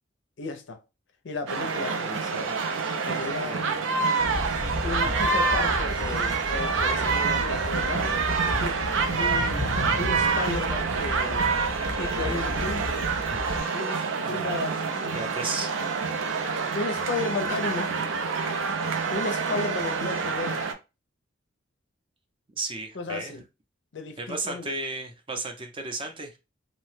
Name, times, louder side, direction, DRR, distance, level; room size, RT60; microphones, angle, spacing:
voice 1, 0.4-0.8 1.2-2.5 3.0-3.7 4.0-4.4 4.8-8.2 8.6-8.8 9.2-9.7 10.0-11.5 12.0-13.0 13.7-15.2 16.7-18.0 19.1-20.7 22.9-23.4 23.9-24.7, left 3 dB, 65° left, 0.5 m, -34 dB
sound 1, 1.5-20.7, right 4 dB, 80° right, 0.4 m, -27 dB
voice 2, 3.5-3.8 14.2-14.7 15.1-15.9 22.5-23.4 24.2-26.3, right 3 dB, 25° right, 0.5 m, -34 dB
sound 2, 4.2-13.6, left 2 dB, 15° left, 0.7 m, -34 dB
2.7 x 2.2 x 3.1 m
head